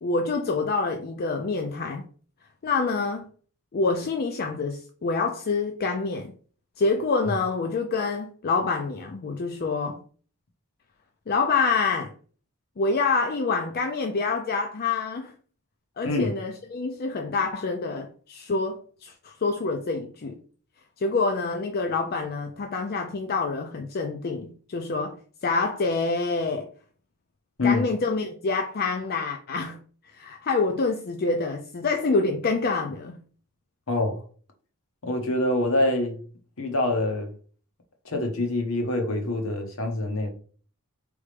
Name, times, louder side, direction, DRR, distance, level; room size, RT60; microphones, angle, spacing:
voice 1, 0.0-2.1 2.6-3.3 3.7-6.3 6.8-10.0 11.3-12.1 12.8-15.3 16.0-20.4 21.0-26.7 27.6-29.8 30.0-33.2, left 4 dB, 45° left, 0.4 m, -27 dB
voice 2, 33.9-34.2 35.0-36.2 36.6-37.3 38.0-40.3, left 2 dB, 65° left, 1.1 m, -25 dB
4.2 x 3.5 x 3.3 m
head